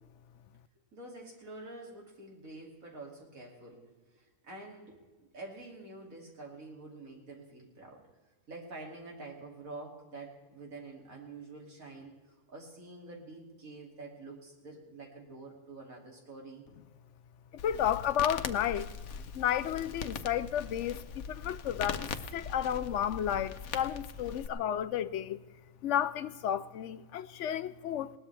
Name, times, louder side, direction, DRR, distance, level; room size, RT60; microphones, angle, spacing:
voice 1, 0.9-3.8 4.1-5.0 5.3-8.0 8.5-12.2 12.5-16.7, right 2 dB, 75° right, 3.2 m, -47 dB
voice 2, 17.5-18.9 19.3-25.4 25.8-28.1, left 10 dB, 65° left, 0.9 m, -32 dB
Crackle, 17.6-24.5, left 6 dB, 85° left, 1.3 m, -41 dB
20.5 x 18.0 x 3.4 m
omnidirectional pair, 1.4 m